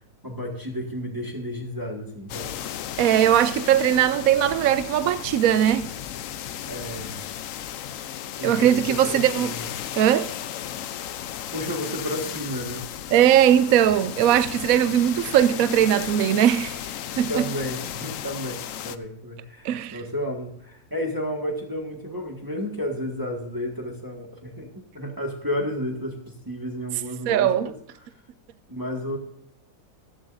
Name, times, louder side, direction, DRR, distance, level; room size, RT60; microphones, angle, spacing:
voice 1, 0.2-2.5 6.6-7.2 8.4-9.7 11.5-12.9 17.3-27.7 28.7-29.2, equal, 15° right, 1.7 m, -32 dB
sound 1, 2.3-19.0, left 10 dB, 65° left, 1.0 m, -34 dB
voice 2, 3.0-5.9 8.4-9.5 10.0-10.3 13.1-16.8 17.2-17.4 19.6-20.0 27.3-27.7, right 11 dB, 75° right, 1.0 m, -20 dB
15.0 x 12.0 x 2.6 m
omnidirectional pair, 1.6 m